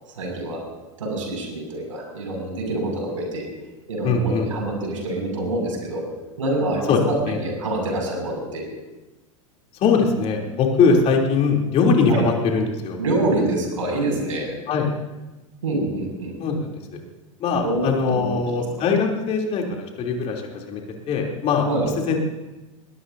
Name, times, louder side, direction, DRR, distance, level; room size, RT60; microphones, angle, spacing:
voice 1, 0.2-0.6 1.0-3.4 3.9-6.0 6.4-7.1 7.4-8.6 12.1-12.2 13.0-14.5 15.6-16.3 17.6-18.4 21.6-21.9, right 2 dB, 70° right, 0 dB, 6.5 m, -26 dB
voice 2, 4.0-4.5 6.9-7.4 9.8-13.0 14.7-14.9 16.4-16.8 17.4-21.6 22.0-22.2, left 4 dB, 35° left, 1 dB, 3.3 m, -21 dB
21.0 x 21.0 x 2.8 m, 1.1 s
figure-of-eight pair, 90°, 17 cm